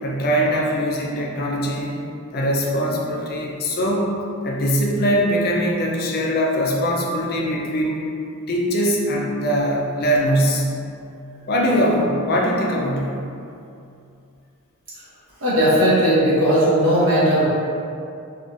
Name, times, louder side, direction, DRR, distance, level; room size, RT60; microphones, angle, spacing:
voice 1, 0.0-2.0 2.3-4.1 4.4-8.0 8.5-10.7 11.5-13.2, equal, 45° left, -2 dB, 0.4 m, -21 dB
voice 2, 15.4-17.5, equal, 65° right, -11 dB, 1.3 m, -17 dB
3.8 x 2.5 x 2.4 m, 2.5 s
head